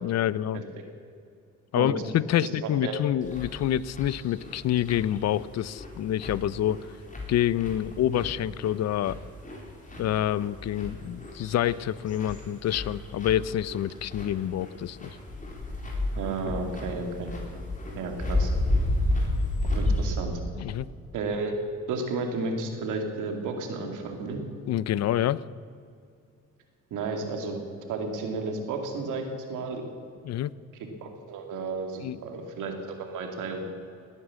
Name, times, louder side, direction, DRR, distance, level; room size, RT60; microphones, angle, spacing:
voice 1, 0.0-0.6 1.7-6.8 7.3-9.2 10.0-15.1 20.6-20.9 24.7-25.4 30.2-30.5 32.0-32.2, left 11 dB, 60° left, 20 dB, 0.5 m, -27 dB
voice 2, 2.4-3.0 16.2-17.3 17.9-18.5 19.7-20.4 21.1-21.5 21.9-24.4 26.9-27.6 27.9-29.2 29.5-29.8 30.8-33.6, right 3 dB, 85° right, 4 dB, 2.4 m, -32 dB
sound 1, 3.2-20.1, left 1 dB, 25° left, 3.8 m, -32 dB
18.5 x 9.8 x 7.5 m, 2.4 s
cardioid pair, 90°, 30 cm